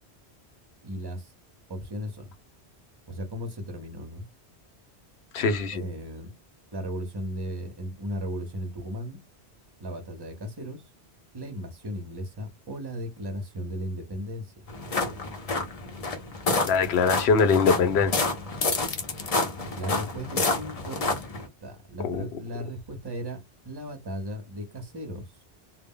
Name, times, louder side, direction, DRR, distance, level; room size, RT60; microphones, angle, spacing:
voice 1, 0.8-1.3 1.7-2.3 3.1-4.2 5.7-6.3 6.7-9.2 9.8-10.8 11.3-14.7 19.7-21.2 21.6-23.4 23.7-25.3, equal, 30° right, 0.5 m, -36 dB
voice 2, 5.3-5.8 16.7-18.3 22.0-22.2, left 5 dB, 75° left, 0.8 m, -22 dB
sound 1, 14.7-21.5, left 3 dB, 45° left, 0.5 m, -29 dB
2.1 x 2.0 x 3.5 m
omnidirectional pair, 1.1 m